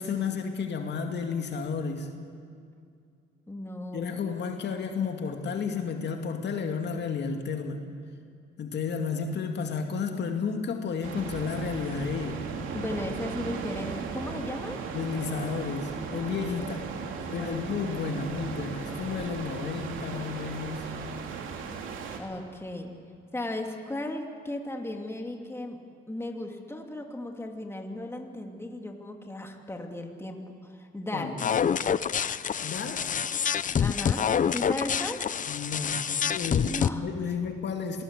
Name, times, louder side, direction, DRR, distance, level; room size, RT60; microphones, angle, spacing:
voice 1, 0.0-2.1 3.9-7.8 8.6-12.4 14.9-16.8 17.3-20.9 31.1-31.5 32.6-33.2 35.5-38.0, left 5 dB, 60° left, 4 dB, 2.3 m, -32 dB
voice 2, 3.5-4.3 12.7-14.8 16.5-16.7 17.1-17.7 22.2-22.9 23.3-25.8 26.1-31.3 33.8-35.2 36.5-37.1, left 1 dB, 10° left, 3 dB, 2.7 m, -36 dB
sound 1, 11.0-22.2, right 5 dB, 90° right, 2.7 m, -37 dB
sound 2, 31.4-36.9, left 8 dB, 40° left, 0.7 m, -27 dB
27.0 x 18.5 x 8.3 m, 2.3 s
cardioid pair, 90°, 20 cm